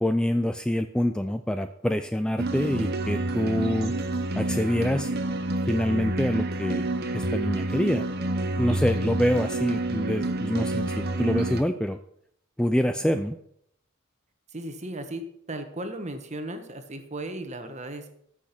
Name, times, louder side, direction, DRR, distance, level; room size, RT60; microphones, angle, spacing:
voice 1, 0.0-3.9 4.4-5.1 5.7-6.9 7.1-8.0 8.6-12.0 12.6-13.4, left 1 dB, 5° left, 8 dB, 0.4 m, -26 dB
sound 1, 2.4-11.6, right 2 dB, 50° right, 0.9 m, -28 dB
voice 2, 14.5-18.1, right 1 dB, 35° right, 7 dB, 1.4 m, -36 dB
14.0 x 6.4 x 6.0 m, 0.70 s
head